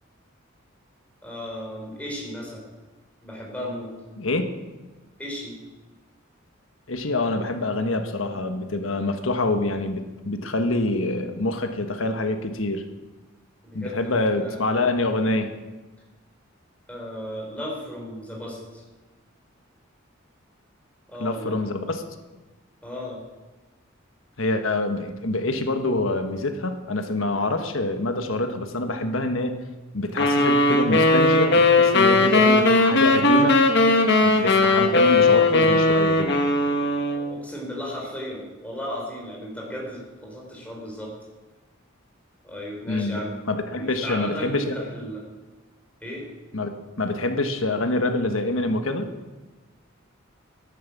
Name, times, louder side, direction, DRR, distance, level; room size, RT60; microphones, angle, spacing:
voice 1, 1.2-2.7 3.2-3.9 5.2-5.6 13.6-14.6 16.9-18.8 21.1-21.6 22.8-23.2 32.1-32.5 37.1-41.1 42.4-43.3 43.7-45.2 46.0-46.3, equal, 5° left, -3 dB, 4.6 m, -35 dB
voice 2, 4.2-4.5 6.9-12.8 13.7-15.5 21.2-22.0 24.4-29.6 29.9-33.6 34.2-36.4 42.9-43.2 43.5-44.7 46.5-46.7 47.0-49.1, left 2 dB, 80° left, 7 dB, 1.4 m, -26 dB
sound 1, 30.2-37.3, left 2 dB, 60° left, 1.6 m, -18 dB
12.5 x 11.0 x 7.4 m, 1.2 s
head